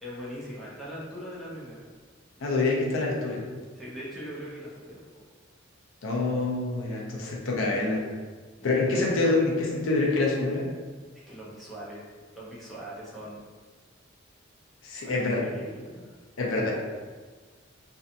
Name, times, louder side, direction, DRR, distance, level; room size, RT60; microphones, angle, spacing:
voice 1, 0.0-1.8 3.5-5.0 8.6-9.3 11.3-12.1 12.3-13.4 15.0-16.2, equal, ahead, -8 dB, 0.6 m, -41 dB
voice 2, 2.4-3.4 6.0-8.0 8.6-10.7 14.8-15.4 16.4-16.7, left 3 dB, 80° left, -2 dB, 0.5 m, -26 dB
2.7 x 2.2 x 2.5 m, 1.4 s
head